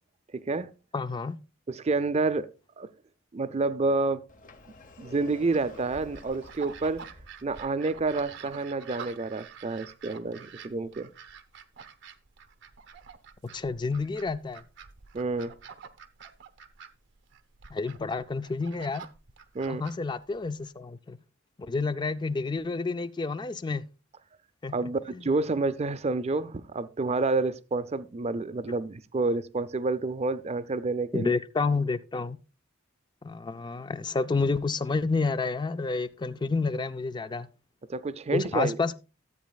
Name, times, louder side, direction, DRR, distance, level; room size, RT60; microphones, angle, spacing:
voice 1, 0.3-0.7 1.7-2.5 2.8-2.9 3.3-4.2 5.0-7.0 7.4-11.1 15.1-15.5 19.5-19.9 24.7-31.3 37.9-38.8, right 3 dB, 35° right, 0.5 m, -29 dB
voice 2, 0.9-1.4 13.4-14.6 17.7-19.1 19.7-21.2 21.7-23.9 24.6-25.2 31.1-32.4 33.2-37.5 38.3-38.9, left 4 dB, 20° left, 0.4 m, -29 dB
Sliding door, 4.3-7.3, left 2 dB, 40° left, 0.8 m, -49 dB
sound 1, 5.5-20.7, right 6 dB, 65° right, 0.8 m, -48 dB
13.5 x 8.2 x 2.3 m
head